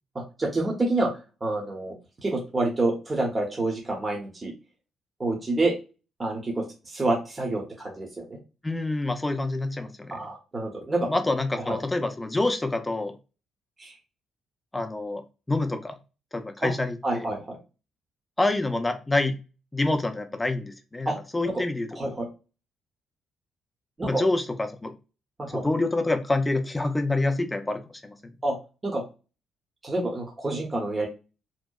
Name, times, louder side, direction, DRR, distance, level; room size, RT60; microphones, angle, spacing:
voice 1, 0.1-1.1 1.4-1.9 2.2-4.5 5.2-5.7 6.2-8.4 10.1-11.1 11.7-11.8 13.8-14.0 16.6-16.7 17.0-17.6 21.1-21.2 21.4-21.6 21.9-22.3 24.0-24.2 25.4-25.6 28.4-28.6 28.8-29.0 29.8-31.1, right 2 dB, 25° right, 0 dB, 0.7 m, -28 dB
voice 2, 8.6-10.2 11.1-13.1 14.7-15.2 15.5-16.0 16.3-17.3 18.4-19.4 19.7-22.1 24.0-24.9 25.5-28.1, left 2 dB, 15° left, 7 dB, 0.4 m, -27 dB
2.7 x 2.0 x 2.3 m, 0.31 s
cardioid pair, 90°, 0 cm